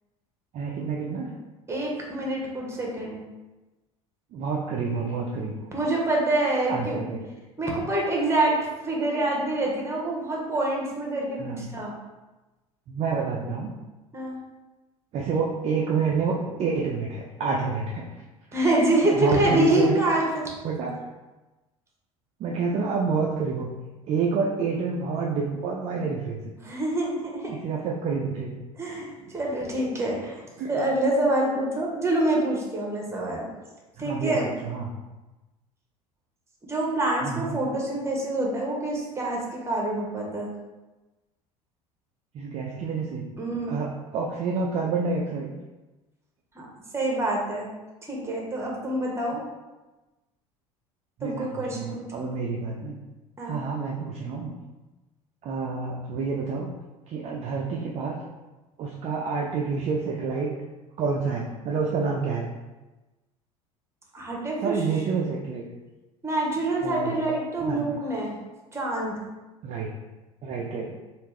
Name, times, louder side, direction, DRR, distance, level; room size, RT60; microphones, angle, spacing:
voice 1, 0.5-1.3 4.3-5.7 6.7-7.2 11.4-11.8 12.9-13.7 15.1-18.1 18.5-18.6 19.1-20.0 20.6-20.9 22.4-26.4 27.5-28.5 30.6-30.7 34.0-35.0 37.2-37.6 42.3-43.3 43.7-45.5 51.2-53.0 53.4-54.6 55.4-56.7 57.1-58.2 58.8-60.5 61.0-62.5 64.6-65.6 66.8-67.2 67.6-68.0 69.6-69.9 70.4-70.9, right 5 dB, 35° right, -1 dB, 0.4 m, -28 dB
voice 2, 1.7-3.2 5.7-7.0 7.6-11.9 14.1-14.3 18.5-20.5 26.6-27.5 28.8-33.5 34.0-34.5 36.7-40.5 43.4-43.8 46.5-46.7 46.9-47.7 48.1-49.4 51.2-52.3 53.4-53.6 64.1-64.8 66.2-68.4 68.7-69.2, right 1 dB, 15° right, -2 dB, 1.0 m, -26 dB
3.3 x 2.5 x 3.1 m, 1.1 s
figure-of-eight pair, 70°, 18 cm